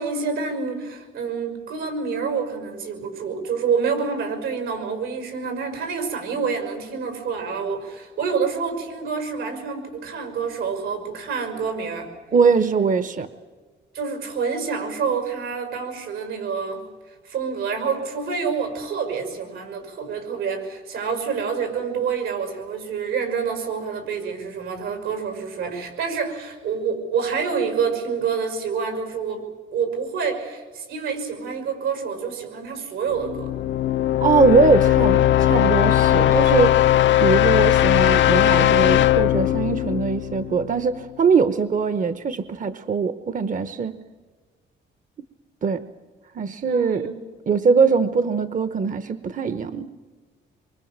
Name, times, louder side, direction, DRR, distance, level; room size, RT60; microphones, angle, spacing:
voice 1, 0.0-12.1 13.9-16.8 17.2-29.5 29.7-33.5 46.6-47.2, right 5 dB, 85° right, 6 dB, 6.0 m, -27 dB
voice 2, 12.3-13.3 34.2-36.8 37.2-44.0 45.6-45.8 46.3-47.1 47.5-49.9, right 5 dB, 40° right, 13 dB, 1.0 m, -21 dB
sound 1, 33.2-41.0, left 13 dB, 70° left, 0.7 m, -18 dB
26.0 x 23.5 x 7.4 m, 1.4 s
cardioid pair, 90°, 20 cm